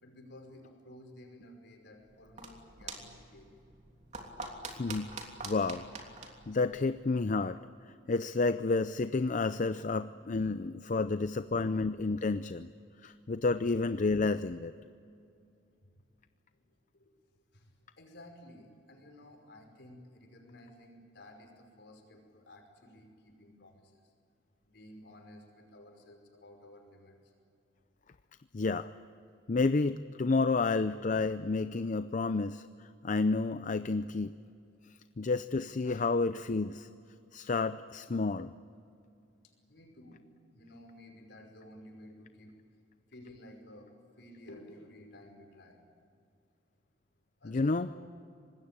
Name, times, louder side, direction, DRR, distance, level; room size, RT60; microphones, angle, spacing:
voice 1, 0.0-3.7 15.8-15.9 16.5-16.7 16.9-17.1 17.5-24.0 24.6-27.3 39.4-40.2 40.5-42.6 43.1-45.8 47.4-48.1, left 1 dB, 65° left, 3 dB, 5.4 m, -54 dB
sound 1, 2.0-7.4, right 3 dB, 40° right, 3.2 m, -46 dB
voice 2, 4.7-5.1 5.4-5.9 6.5-7.6 8.1-12.7 13.0-14.7 28.5-28.9 29.5-34.3 35.2-36.9 37.3-38.5 47.4-47.9, left 3 dB, 40° left, 12 dB, 0.5 m, -30 dB
25.5 x 20.0 x 8.9 m, 2.5 s
head